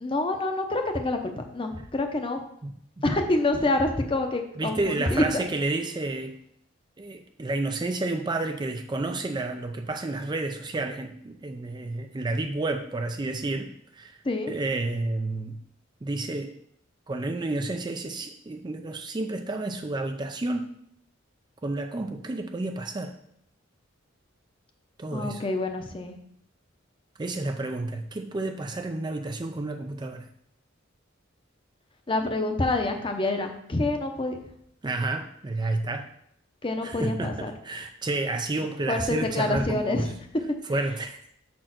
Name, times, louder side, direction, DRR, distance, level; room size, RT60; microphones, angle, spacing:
voice 1, 0.0-2.4 3.0-5.4 14.2-14.5 25.1-26.1 32.1-34.4 36.6-37.5 38.9-40.1, left 2 dB, 25° left, 5 dB, 0.8 m, -27 dB
voice 2, 2.6-3.0 4.6-6.4 7.0-14.1 14.5-15.6 16.0-16.5 17.1-20.7 21.6-23.1 25.0-25.4 27.2-30.3 34.8-36.1 36.8-40.1 40.7-41.2, right 2 dB, 20° right, 6 dB, 0.4 m, -30 dB
6.4 x 4.4 x 5.9 m, 0.70 s
head